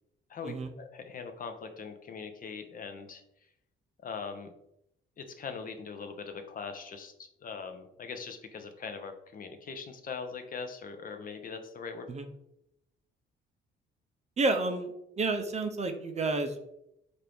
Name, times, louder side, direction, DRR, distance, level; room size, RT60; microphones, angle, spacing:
voice 1, 0.3-3.2 4.0-4.5 5.2-12.1, left 5 dB, 45° left, 6 dB, 0.6 m, -41 dB
voice 2, 14.4-14.9 15.2-16.6, right 3 dB, 35° right, 6 dB, 0.5 m, -30 dB
4.4 x 2.5 x 3.4 m, 0.81 s
cardioid pair, 90°, 20 cm